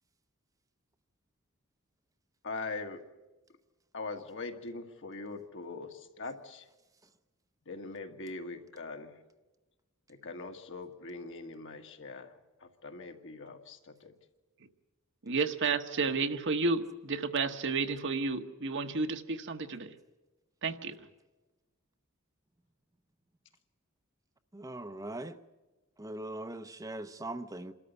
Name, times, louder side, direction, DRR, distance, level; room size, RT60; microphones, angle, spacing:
voice 1, 2.4-3.0 3.9-6.7 7.7-9.2 10.1-12.3 12.6-14.1, left 3 dB, 60° left, 4 dB, 1.8 m, -42 dB
voice 2, 15.2-19.9 20.6-21.0, right 4 dB, 60° right, 7 dB, 1.2 m, -31 dB
voice 3, 24.5-25.4 26.0-27.7, right 1 dB, 15° right, 9 dB, 0.7 m, -40 dB
27.5 x 13.5 x 9.5 m, 1.1 s
head